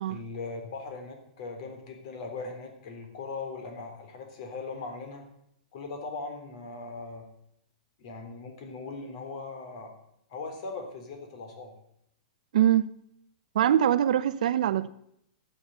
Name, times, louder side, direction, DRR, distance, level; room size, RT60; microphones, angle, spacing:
voice 1, 0.1-5.3 5.7-7.3 8.0-10.0 10.3-11.7, left 3 dB, 55° left, 3.6 m, -39 dB
voice 2, 12.5-12.9 13.5-14.9, right 10 dB, 70° right, 0.8 m, -23 dB
12.5 x 8.6 x 7.9 m
hypercardioid pair, 150°, 4 cm